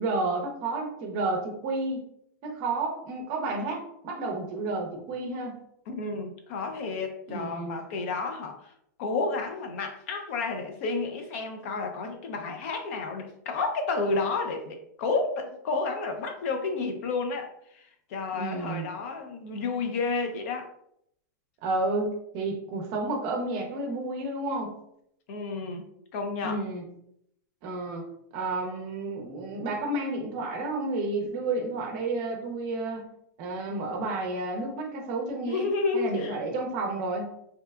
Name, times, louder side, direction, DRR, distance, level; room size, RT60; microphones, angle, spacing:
voice 1, 0.0-2.0 2.4-5.6 7.3-7.8 18.4-18.9 21.6-24.7 26.4-26.9 27.6-28.1 28.3-33.1 33.4-35.7 35.9-37.3, right 2 dB, 40° right, 2 dB, 0.6 m, -31 dB
voice 2, 5.9-8.7 9.0-20.7 25.3-25.9 26.1-26.6 35.5-36.4, left 3 dB, 50° left, 5 dB, 0.4 m, -31 dB
2.7 x 2.2 x 2.2 m, 0.73 s
supercardioid pair, 160°, 10 cm